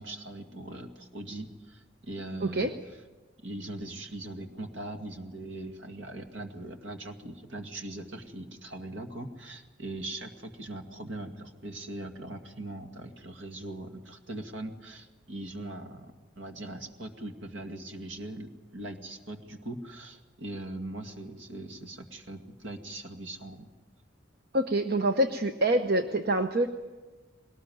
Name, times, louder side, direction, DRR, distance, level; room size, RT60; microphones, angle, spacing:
voice 1, 0.0-2.7 3.4-23.7, right 2 dB, 70° right, 5 dB, 2.2 m, -40 dB
voice 2, 2.4-2.7 24.5-26.7, right 1 dB, 50° right, 7 dB, 0.9 m, -26 dB
21.0 x 19.0 x 9.4 m, 1.3 s
head